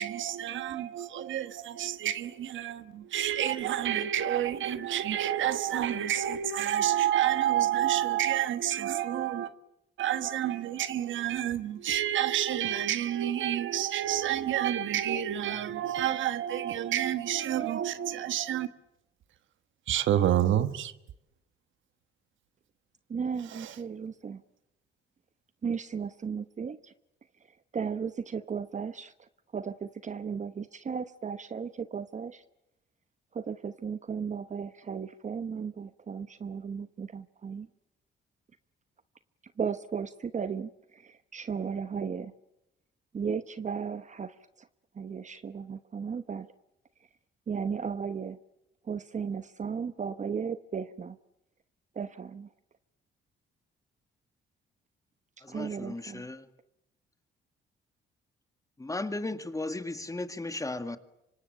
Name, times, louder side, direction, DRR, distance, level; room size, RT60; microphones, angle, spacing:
voice 1, 0.0-9.5 10.0-18.7 19.9-20.9 23.5-23.7, right 11 dB, 75° right, 1.4 m, -29 dB
voice 2, 23.1-24.4 25.6-26.9 27.5-32.4 33.3-37.7 39.6-42.3 43.1-44.7 44.9-46.5 47.5-48.4 48.8-51.2 51.9-52.5 55.5-56.3, right 6 dB, 35° right, 0.9 m, -35 dB
voice 3, 55.4-56.5 58.8-61.0, left 2 dB, 15° left, 1.9 m, -35 dB
26.0 x 24.5 x 8.8 m
cardioid pair, 90°, 20 cm